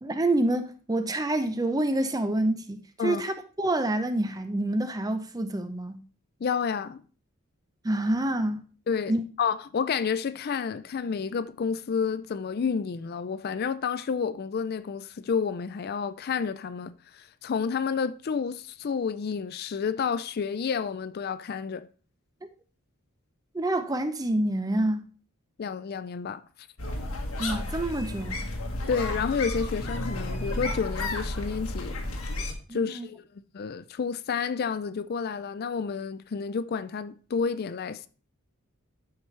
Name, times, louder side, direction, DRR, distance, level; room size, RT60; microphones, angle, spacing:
voice 1, 0.0-6.0 7.8-8.6 9.1-9.2 23.5-25.1 27.4-28.5 32.7-33.1, right 1 dB, 15° right, 0.6 m, -27 dB
voice 2, 6.4-7.0 8.9-9.1 9.4-21.9 25.6-26.4 28.9-32.0 32.7-38.1, left 6 dB, 45° left, 0.4 m, -30 dB
sound 1, 26.8-32.5, left 2 dB, 90° left, 1.6 m, -32 dB
12.0 x 5.0 x 3.2 m
head